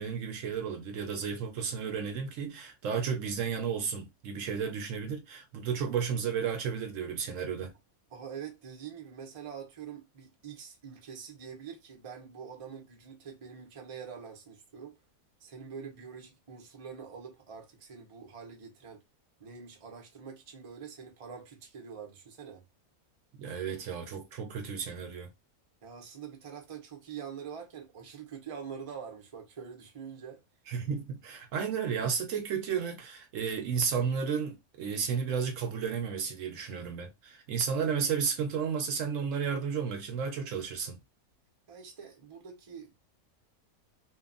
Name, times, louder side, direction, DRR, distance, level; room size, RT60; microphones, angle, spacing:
voice 1, 0.0-7.7 23.4-25.3 30.7-41.0, right 6 dB, 65° right, 0.9 m, -33 dB
voice 2, 8.1-15.0 15.4-19.0 19.4-22.7 25.8-30.4 41.7-42.9, right 7 dB, 40° right, 0.5 m, -45 dB
2.9 x 2.2 x 2.5 m
omnidirectional pair, 1.6 m